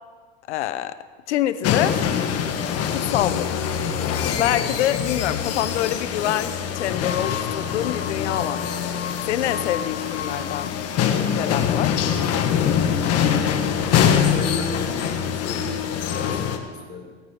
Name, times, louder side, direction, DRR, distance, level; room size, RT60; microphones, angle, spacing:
voice 1, 0.5-1.0 1.3-2.0 2.9-3.5 4.3-8.7 9.3-10.7 11.3-12.0, left 13 dB, 85° left, 13 dB, 0.9 m, -26 dB
sound 1, 1.6-16.6, left 8 dB, 45° left, 1.6 m, -24 dB
voice 2, 13.4-17.1, left 3 dB, 30° left, 0 dB, 3.8 m, -34 dB
17.0 x 9.6 x 5.8 m, 1.5 s
supercardioid pair, 100°, 33 cm